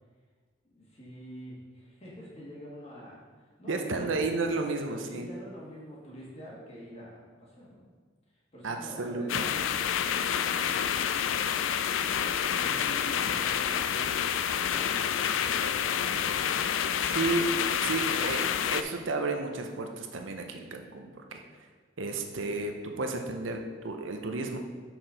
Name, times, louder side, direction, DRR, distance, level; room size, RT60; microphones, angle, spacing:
voice 1, 0.7-4.1 4.7-7.9 8.5-11.5 12.5-14.3 14.6-16.9, equal, 35° left, -5 dB, 1.7 m, -47 dB
voice 2, 3.7-5.3 8.6-9.6 17.1-17.5 17.8-18.4 18.7-21.4 22.0-24.6, right 3 dB, 85° right, 4 dB, 0.7 m, -32 dB
sound 1, 9.3-18.8, left 8 dB, 85° left, 0.3 m, -28 dB
5.9 x 4.5 x 5.0 m, 1.5 s
head